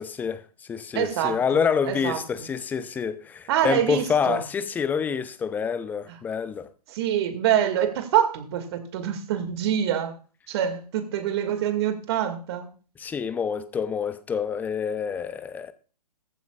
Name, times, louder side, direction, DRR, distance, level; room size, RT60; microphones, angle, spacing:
voice 1, 0.0-6.7 13.0-15.7, left 6 dB, 10° left, 0.6 m, -27 dB
voice 2, 0.9-2.5 3.5-4.4 6.9-10.1 10.5-12.7, right 10 dB, 40° right, 2.1 m, -26 dB
22.0 x 9.3 x 2.4 m
figure-of-eight pair, 130°, 20 cm